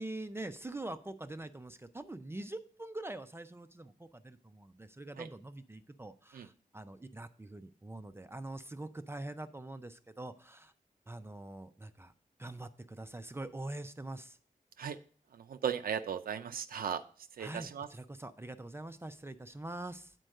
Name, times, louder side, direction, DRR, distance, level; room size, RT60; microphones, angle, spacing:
voice 1, 0.0-10.7 11.1-12.1 12.4-14.4 17.4-20.1, right 2 dB, 15° right, 9 dB, 0.5 m, -44 dB
voice 2, 15.3-17.0 17.4-17.9, right 8 dB, 90° right, 8 dB, 0.4 m, -36 dB
7.7 x 4.5 x 6.3 m, 0.43 s
wide cardioid pair, 105°, 15 cm